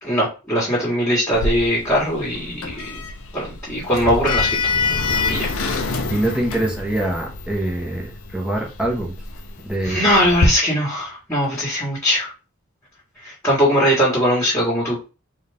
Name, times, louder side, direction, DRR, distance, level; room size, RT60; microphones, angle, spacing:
voice 1, 0.0-4.6 5.3-5.5 9.8-12.3 13.2-15.0, equal, 10° left, -5 dB, 1.6 m, -20 dB
Sliding door, 1.3-10.5, left 3 dB, 80° left, 0.7 m, -26 dB
voice 2, 6.1-9.1 9.6-10.0, right 1 dB, 5° right, -1 dB, 1.1 m, -24 dB
4.1 x 2.6 x 3.4 m, 0.31 s
head